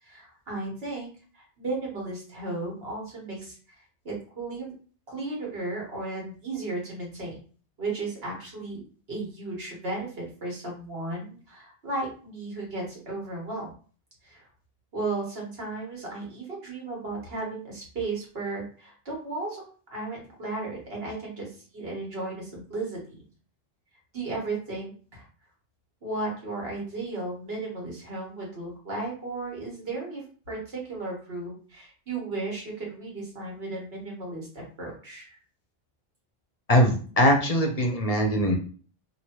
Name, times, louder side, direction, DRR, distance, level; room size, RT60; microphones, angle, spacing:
voice 1, 0.0-4.7 5.1-7.3 7.8-8.8 9.1-13.7 14.2-14.5 14.9-19.7 19.9-23.2 24.1-25.2 26.0-35.4, right 2 dB, 75° right, -2 dB, 1.6 m, -35 dB
voice 2, 36.7-38.6, equal, 45° left, 2 dB, 0.6 m, -21 dB
3.1 x 2.7 x 2.9 m, 0.41 s
omnidirectional pair, 1.0 m